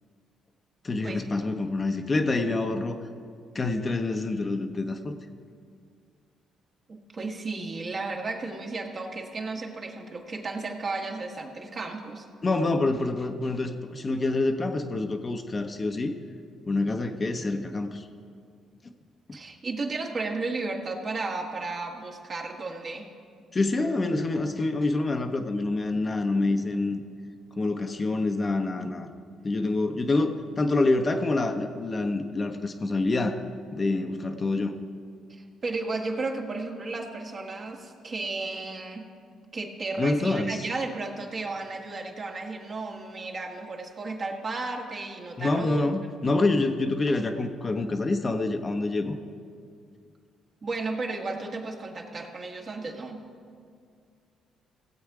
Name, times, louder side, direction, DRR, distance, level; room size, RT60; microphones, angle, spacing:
voice 1, 0.8-3.0 3.5-5.1 12.4-16.2 16.7-18.1 18.8-18.9 23.5-27.0 27.6-29.1 29.4-33.4 33.7-34.7 40.0-40.7 45.4-49.1, left 2 dB, 35° left, 5 dB, 0.9 m, -26 dB
voice 2, 6.9-12.3 19.3-23.1 35.3-39.1 39.5-45.8 50.6-53.2, right 3 dB, 45° right, 1 dB, 1.7 m, -34 dB
17.0 x 7.8 x 4.8 m, 2.2 s
supercardioid pair, 65°, 0 cm